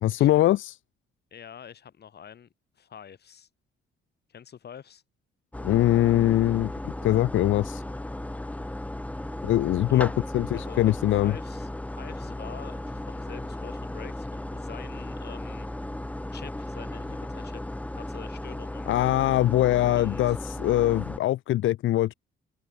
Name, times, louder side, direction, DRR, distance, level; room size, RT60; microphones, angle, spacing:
voice 1, 0.0-0.7 5.6-7.8 9.4-11.4 18.9-22.1, left 14 dB, 75° left, 1.0 m, -23 dB
voice 2, 1.3-2.5 2.8-3.5 4.3-5.0 9.9-15.7 16.3-18.9 19.9-20.4, left 8 dB, 55° left, 5.7 m, -46 dB
sound 1, 5.5-21.2, left 1 dB, 5° left, 1.1 m, -35 dB
open air
cardioid pair, 90°, 20 cm